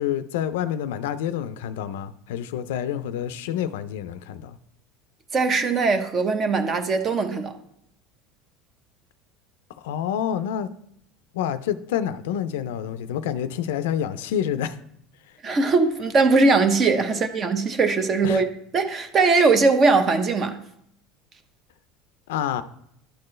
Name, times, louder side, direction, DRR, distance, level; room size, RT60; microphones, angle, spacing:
voice 1, 0.0-4.6 9.8-10.7 11.3-14.8 17.1-17.2 18.2-18.4 22.3-22.6, left 9 dB, 90° left, 0.4 m, -28 dB
voice 2, 5.3-7.5 15.4-18.5 18.7-20.6, right 4 dB, 35° right, 0.8 m, -20 dB
11.5 x 4.4 x 3.2 m
supercardioid pair, 120°, 0 cm